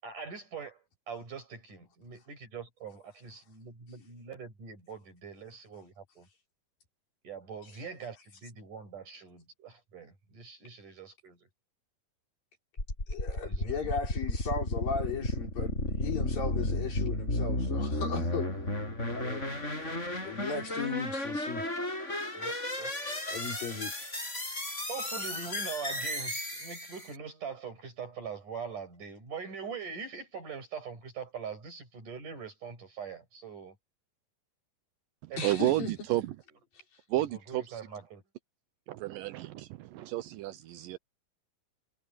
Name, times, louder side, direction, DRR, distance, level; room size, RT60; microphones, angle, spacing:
voice 1, 0.0-6.3 7.2-11.5 13.4-13.6 13.8-13.9 22.3-22.9 24.9-33.8 35.3-36.0 36.8-38.2, right 6 dB, 60° right, 8.9 m, -43 dB
Pitch Rising D., 12.8-27.2, left 1 dB, 20° left, 7.0 m, -33 dB
voice 2, 13.1-18.6 19.1-19.5 19.8-21.7 23.3-23.9 35.3-35.9, left 5 dB, 75° left, 6.8 m, -37 dB
voice 3, 35.4-36.3 37.1-37.6 38.9-41.0, right 15 dB, 80° right, 2.4 m, -31 dB
omnidirectional pair, 4.0 m